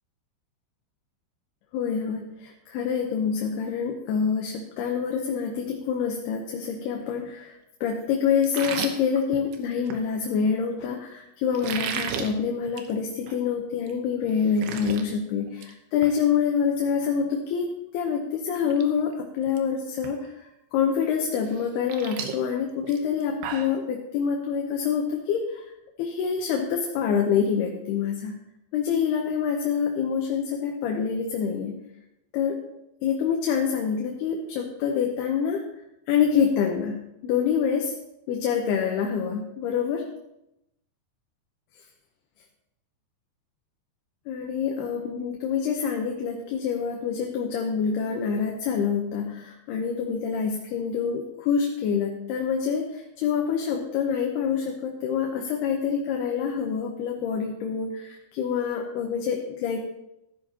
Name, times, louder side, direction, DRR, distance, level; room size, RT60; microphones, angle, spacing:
voice 1, 1.7-17.7 17.9-20.2 20.7-25.6 26.0-28.4 28.7-31.9 32.3-32.6 33.0-35.6 36.1-37.9 38.3-40.1 44.3-59.8, left 7 dB, 80° left, 2 dB, 2.9 m, -26 dB
sound 1, 8.4-10.0 11.5-12.3 12.7-12.9 13.3-13.4 13.9-14.0 14.2-15.0 15.4-15.7 16.0-16.2 18.0-18.1 18.6-18.8 19.1-19.6 20.0-20.1 21.5-23.8, right 7 dB, 85° right, 3.1 m, -34 dB
14.5 x 12.5 x 2.9 m, 0.86 s
omnidirectional pair, 4.6 m